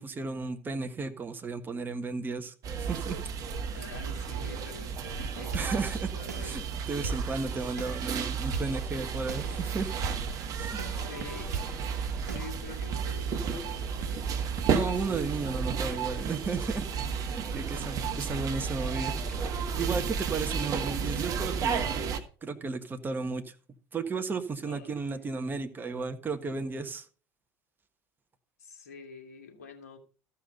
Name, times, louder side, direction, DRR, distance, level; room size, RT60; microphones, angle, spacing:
voice 1, 0.0-3.2 5.5-6.1 6.4-6.6 6.9-9.9 10.6-10.8 14.7-16.8 17.3-19.1 19.8-22.0 22.4-23.5 23.9-27.0, right 4 dB, 20° right, 7 dB, 1.4 m, -34 dB
sound 1, 2.6-22.2, right 6 dB, 45° right, 1.5 m, -33 dB
voice 2, 3.7-6.7 10.8-14.2 18.0-18.3 24.7-25.1 28.6-30.0, left 5 dB, 75° left, 3 dB, 2.3 m, -47 dB
sound 2, 5.3-12.4, right 5 dB, 80° right, 1.3 m, -40 dB
sound 3, 13.7-19.7, left 2 dB, 10° left, 2.0 m, -51 dB
14.0 x 5.6 x 5.5 m, 0.38 s
figure-of-eight pair, 70°, 9 cm